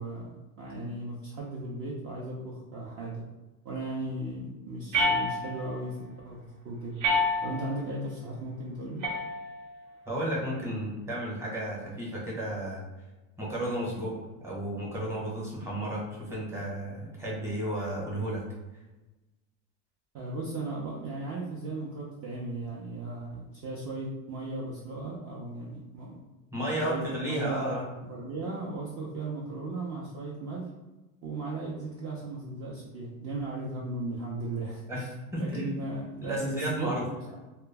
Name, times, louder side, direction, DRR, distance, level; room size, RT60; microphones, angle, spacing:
voice 1, 0.0-3.2 3.6-6.0 6.2-7.0 7.4-9.0 20.1-26.2 26.8-27.6 28.0-30.6 31.2-35.1 35.4-37.4, right 2 dB, 35° right, -5 dB, 0.5 m, -36 dB
sound 1, 4.9-5.8 7.0-7.8 9.0-9.8, left 1 dB, 60° right, 0.9 m, -28 dB
voice 2, 10.1-12.8 13.4-18.4 26.5-27.8 34.9-35.0 35.3-35.7 36.2-37.0, right 1 dB, 5° right, -5 dB, 0.9 m, -33 dB
2.2 x 2.0 x 3.4 m, 1.1 s
supercardioid pair, 110°, 43 cm